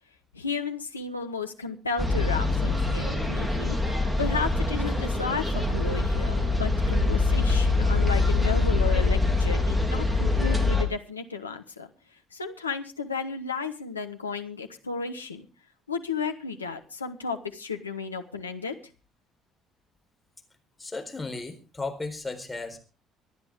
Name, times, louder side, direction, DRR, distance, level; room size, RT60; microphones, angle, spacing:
voice 1, 0.3-3.8 4.2-11.9 12.3-15.5 15.9-18.7, left 5 dB, 85° left, 6 dB, 1.2 m, -33 dB
sound 1, 2.0-10.8, left 2 dB, 10° right, 3.6 m, -24 dB
voice 2, 20.8-22.8, left 3 dB, 15° left, 4 dB, 4.2 m, -35 dB
25.0 x 10.0 x 3.6 m, 0.34 s
figure-of-eight pair, 50°, 0 cm